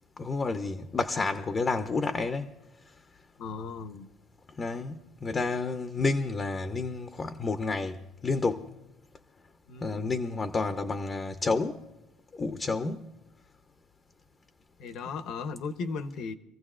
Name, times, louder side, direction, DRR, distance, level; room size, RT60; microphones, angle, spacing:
voice 1, 0.2-2.5 4.6-8.7 9.8-11.8 12.3-13.1, left 3 dB, 25° left, 0.6 m, -30 dB
voice 2, 3.4-4.1 9.7-10.1 14.8-16.3, left 4 dB, 60° left, 0.8 m, -36 dB
26.0 x 15.0 x 2.5 m
cardioid pair, 135°, 0 cm